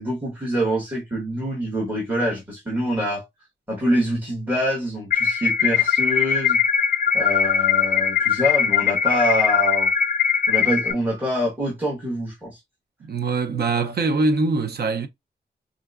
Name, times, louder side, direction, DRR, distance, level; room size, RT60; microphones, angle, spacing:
voice 1, 0.0-3.2 3.7-6.6 7.1-9.9 10.5-12.6, equal, 10° right, 1.2 m, -25 dB
sound 1, 5.1-10.9, left 7 dB, 55° left, 0.4 m, -20 dB
voice 2, 13.0-15.1, right 3 dB, 60° right, 0.5 m, -23 dB
4.5 x 2.5 x 2.4 m
wide cardioid pair, 140°, 18 cm